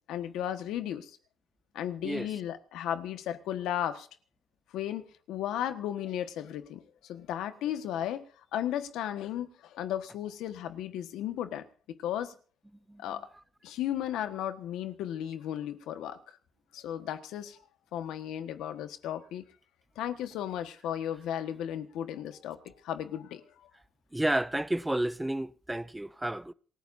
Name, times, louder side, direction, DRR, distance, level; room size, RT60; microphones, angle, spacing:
voice 1, 0.1-1.1 1.7-4.1 4.7-8.3 8.5-12.3 13.0-13.3 13.6-16.2 16.7-17.6 17.9-19.4 19.9-23.7, left 11 dB, 90° left, 1.4 m, -35 dB
voice 2, 24.1-26.5, right 1 dB, 10° right, 0.6 m, -31 dB
27.0 x 14.5 x 2.7 m
cardioid pair, 90°, 0 cm